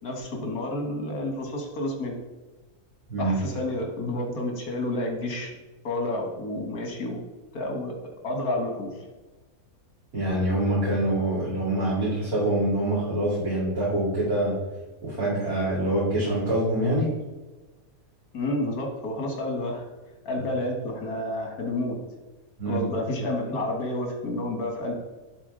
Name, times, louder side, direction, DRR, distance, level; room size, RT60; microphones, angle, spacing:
voice 1, 0.0-2.2 3.2-5.5 5.8-7.2 7.5-8.0 8.2-8.9 18.3-19.9 20.3-22.0 22.7-24.9, left 1 dB, 85° left, 1 dB, 2.0 m, -30 dB
voice 2, 10.1-14.5 15.0-17.1 22.6-22.8, right 1 dB, 85° right, -10 dB, 3.0 m, -25 dB
11.5 x 4.0 x 3.8 m, 1.2 s
omnidirectional pair, 1.5 m